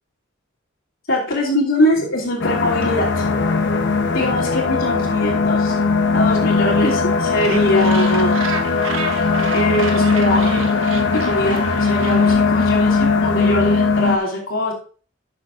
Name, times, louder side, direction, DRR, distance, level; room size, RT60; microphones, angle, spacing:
voice 1, 1.1-3.2 4.1-5.7 6.1-8.4 9.5-10.6 11.2-14.7, left 1 dB, 90° left, -4 dB, 2.8 m, -22 dB
sound 1, 2.4-14.2, left 4 dB, 60° left, 0.9 m, -18 dB
Gull seagull, 7.3-12.3, right 5 dB, 80° right, 1.4 m, -31 dB
17.0 x 6.8 x 2.5 m, 0.40 s
head